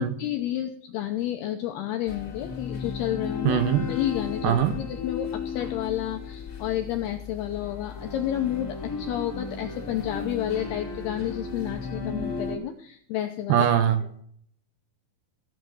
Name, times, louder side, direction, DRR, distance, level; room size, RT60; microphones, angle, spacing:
voice 1, 0.0-13.7, left 12 dB, 80° left, 5 dB, 2.3 m, -31 dB
sound 1, 2.1-12.6, left 5 dB, 25° left, 2.2 m, -35 dB
voice 2, 3.5-3.9 4.4-4.7 13.5-14.0, right 10 dB, 75° right, 9 dB, 2.6 m, -21 dB
15.5 x 7.9 x 6.2 m, 0.62 s
omnidirectional pair, 5.6 m